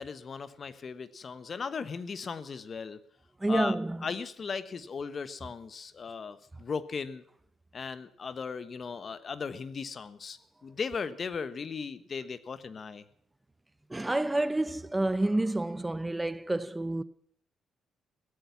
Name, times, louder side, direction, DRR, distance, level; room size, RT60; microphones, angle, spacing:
voice 1, 0.0-3.0 3.5-3.7 4.0-7.2 7.7-13.0, left 5 dB, 45° left, 1.2 m, -37 dB
voice 2, 3.4-4.1 13.9-17.0, right 2 dB, 15° right, 0.7 m, -29 dB
16.5 x 14.0 x 6.0 m
cardioid pair, 90°, 0 cm